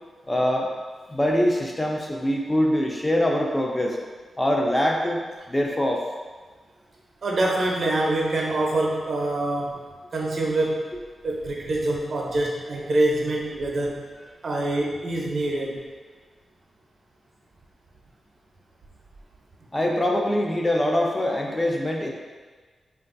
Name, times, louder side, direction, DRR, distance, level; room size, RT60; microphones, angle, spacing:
voice 1, 0.3-0.7 1.1-4.0 4.4-5.2 5.5-6.0 19.7-22.1, left 1 dB, 15° left, 0 dB, 0.3 m, -23 dB
voice 2, 7.2-9.8 10.1-10.9 11.2-14.1 14.4-15.8, right 2 dB, 60° right, -1 dB, 0.5 m, -25 dB
3.2 x 2.3 x 2.4 m, 1.4 s
wide cardioid pair, 100°, 0 cm